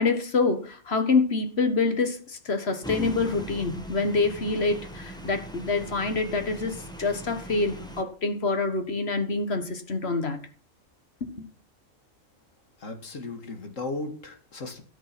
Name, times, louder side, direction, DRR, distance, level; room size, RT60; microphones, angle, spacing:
voice 1, 0.0-10.4 11.2-11.5, left 3 dB, 55° left, 1.8 m, -26 dB
sound 1, 2.8-8.0, equal, 5° left, 1.4 m, -39 dB
voice 2, 12.8-14.8, left 2 dB, 80° left, 2.2 m, -36 dB
12.5 x 8.5 x 6.0 m
omnidirectional pair, 1.3 m